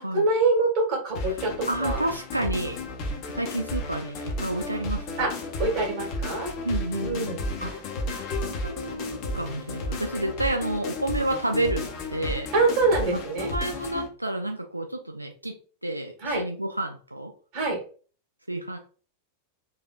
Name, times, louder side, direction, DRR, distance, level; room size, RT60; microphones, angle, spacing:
voice 1, 0.0-2.0 5.2-5.3 5.6-6.5 7.0-7.4 12.5-13.5 16.2-16.4 17.5-17.8, right 3 dB, 45° right, 1 dB, 1.5 m, -25 dB
sound 1, 1.1-14.1, left 1 dB, 45° left, 0.7 m, -33 dB
voice 2, 1.7-2.8 3.2-5.3 6.6-12.5 13.1-17.3 18.5-18.8, right 1 dB, 85° right, 4 dB, 0.4 m, -30 dB
4.0 x 2.7 x 2.4 m, 0.39 s
figure-of-eight pair, 90°, 0 cm